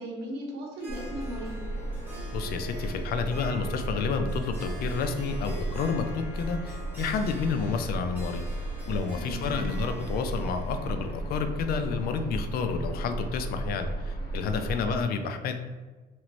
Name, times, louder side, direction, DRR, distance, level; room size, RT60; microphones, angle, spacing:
voice 1, 0.0-1.6 9.1-9.5 14.7-15.1, right 1 dB, 80° right, 0 dB, 0.8 m, -38 dB
Harp, 0.8-12.6, equal, 10° right, 1.4 m, -46 dB
sound 1, 0.9-15.0, right 2 dB, 80° left, 0.9 m, -35 dB
voice 2, 2.3-8.5 8.9-15.6, left 5 dB, 65° left, 7 dB, 0.4 m, -30 dB
3.0 x 2.5 x 3.0 m, 1.3 s
cardioid pair, 110°, 17 cm